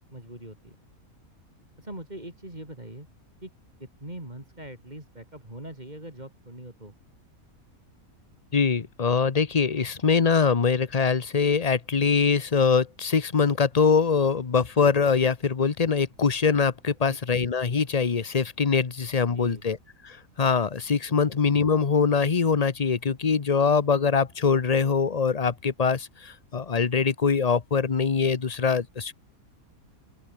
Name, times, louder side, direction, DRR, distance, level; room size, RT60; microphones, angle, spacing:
voice 1, 0.1-0.8 1.8-3.1 3.4-3.5 3.8-6.9 17.0-17.2 19.3-19.6 21.1-21.2, right 1 dB, 30° right, 6.4 m, -42 dB
voice 2, 8.5-19.8 20.0-29.1, left 5 dB, 30° left, 0.9 m, -23 dB
open air
omnidirectional pair, 1.5 m